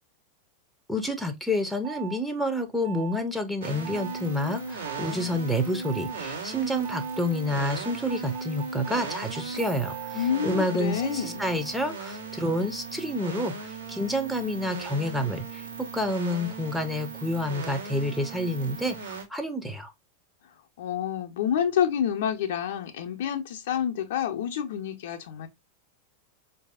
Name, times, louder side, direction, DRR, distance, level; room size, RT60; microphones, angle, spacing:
voice 1, 0.9-19.9, left 1 dB, ahead, 0.6 m, -29 dB
sound 1, 1.8-2.2 2.8-3.2 3.8-4.2 4.8-5.2 5.8-6.2 6.8-7.2 7.8-12.9, right 13 dB, 50° right, 0.6 m, -42 dB
sound 2, 3.6-19.2, right 4 dB, 75° right, 1.1 m, -37 dB
voice 2, 10.1-11.5 20.8-25.5, left 9 dB, 55° left, 0.7 m, -28 dB
4.6 x 2.7 x 2.3 m
figure-of-eight pair, 90°, 0 cm